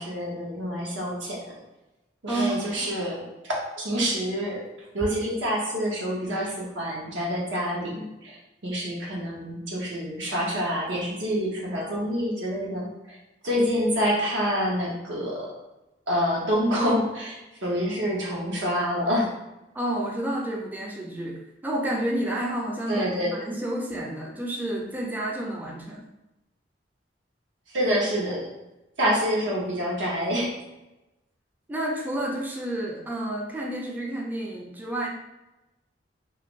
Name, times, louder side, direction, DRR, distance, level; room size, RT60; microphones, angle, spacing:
voice 1, 0.0-1.4 2.2-4.6 4.9-13.2 13.4-15.5 16.1-19.3 22.9-23.6 27.7-28.5 29.0-30.5, equal, 85° right, -3 dB, 0.9 m, -27 dB
voice 2, 19.7-23.1 23.4-26.1 31.7-35.1, right 1 dB, 10° right, -2 dB, 0.3 m, -30 dB
2.5 x 2.4 x 3.0 m, 0.99 s
head